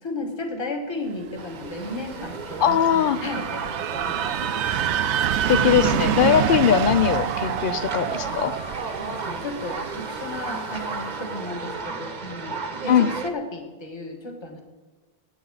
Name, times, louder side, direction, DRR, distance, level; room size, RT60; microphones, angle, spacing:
voice 1, 0.0-4.2 9.0-14.6, left 2 dB, 25° left, 2 dB, 1.6 m, -34 dB
sound 1, 1.4-13.3, right 4 dB, 45° right, 1.0 m, -34 dB
sound 2, 1.4-11.2, right 10 dB, 85° right, 0.9 m, -28 dB
voice 2, 2.6-3.2 5.5-8.5 12.9-13.1, left 9 dB, 55° left, 14 dB, 0.7 m, -20 dB
20.5 x 8.7 x 4.0 m, 1.2 s
omnidirectional pair, 1.1 m